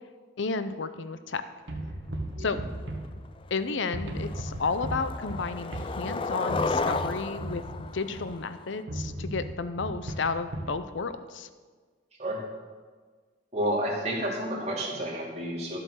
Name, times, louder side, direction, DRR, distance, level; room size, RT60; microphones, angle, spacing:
voice 1, 0.4-1.4 2.4-2.6 3.5-11.5, left 4 dB, 75° left, 11 dB, 0.6 m, -32 dB
sound 1, 1.7-3.6 3.9-8.4 8.9-10.8, right 1 dB, 70° right, 1.4 m, -36 dB
Skateboard, 3.0-3.1 3.5-3.8 4.2-8.8, left 3 dB, 25° left, 0.4 m, -33 dB
voice 2, 13.5-15.8, right 1 dB, 35° right, -3 dB, 2.8 m, -30 dB
12.5 x 7.9 x 6.4 m, 1.5 s
head